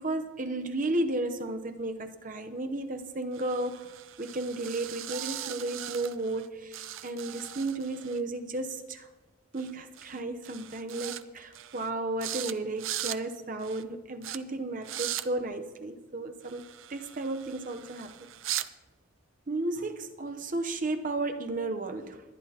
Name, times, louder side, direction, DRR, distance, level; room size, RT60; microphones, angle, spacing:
voice 1, 0.0-3.9 4.2-9.1 9.5-16.6 16.9-18.3 19.5-22.2, right 2 dB, 40° right, 0.8 m, -33 dB
sound 1, 3.3-6.5 6.7-8.2 9.6-9.7 10.0-10.2 10.4-11.2 11.5-11.9 12.2-12.5 12.8-13.2 13.6-13.8 14.2-14.4 14.8-15.2 16.4-18.7, right 12 dB, 80° right, 0.5 m, -39 dB
21.5 x 10.0 x 2.9 m
head